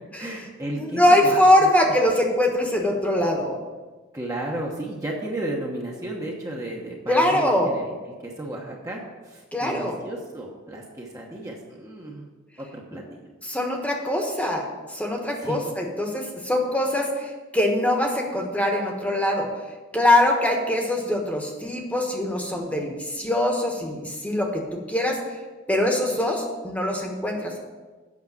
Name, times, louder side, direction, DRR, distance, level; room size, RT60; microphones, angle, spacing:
voice 1, 0.2-1.7 4.1-7.9 8.2-12.2 12.6-13.2 15.4-15.6, right 1 dB, 15° right, -2 dB, 1.0 m, -33 dB
voice 2, 0.8-3.6 7.1-7.7 9.5-10.0 13.4-19.5 19.9-24.6 24.9-25.2 25.7-27.6, left 1 dB, 5° left, 1 dB, 1.2 m, -22 dB
8.3 x 6.2 x 7.4 m, 1.3 s
head